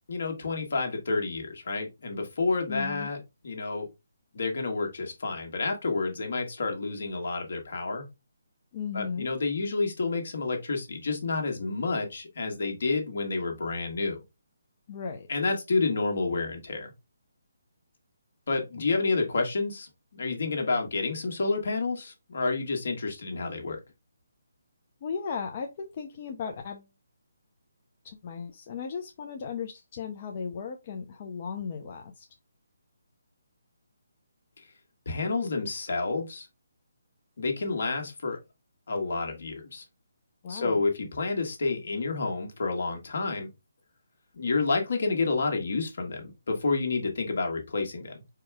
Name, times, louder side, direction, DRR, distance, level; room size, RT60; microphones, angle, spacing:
voice 1, 0.1-3.2 3.4-3.9 4.3-8.1 8.9-14.2 15.3-16.9 18.5-23.8 34.6-34.7 35.0-36.5 37.4-38.4 38.9-39.8 40.5-43.5 44.3-48.1, left 3 dB, 60° left, 1.6 m, -29 dB
voice 2, 2.7-3.1 8.7-9.3 14.9-15.3 25.0-26.9 28.0-32.3 40.4-40.8, left 6 dB, 35° left, 0.6 m, -36 dB
4.5 x 2.3 x 4.8 m
hypercardioid pair, 160°, 0 cm